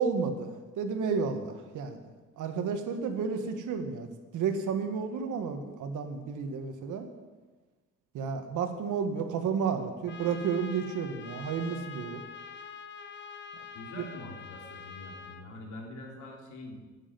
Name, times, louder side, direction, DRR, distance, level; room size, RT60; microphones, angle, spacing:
voice 1, 0.0-2.0 2.4-4.1 4.3-7.1 8.1-12.2, right 6 dB, 80° right, 7 dB, 1.6 m, -31 dB
Trumpet, 10.1-15.4, left 6 dB, 40° left, 1.0 m, -45 dB
voice 2, 13.7-16.8, left 2 dB, 80° left, 0 dB, 3.2 m, -44 dB
10.0 x 7.5 x 9.2 m, 1.3 s
cardioid pair, 90°, 30 cm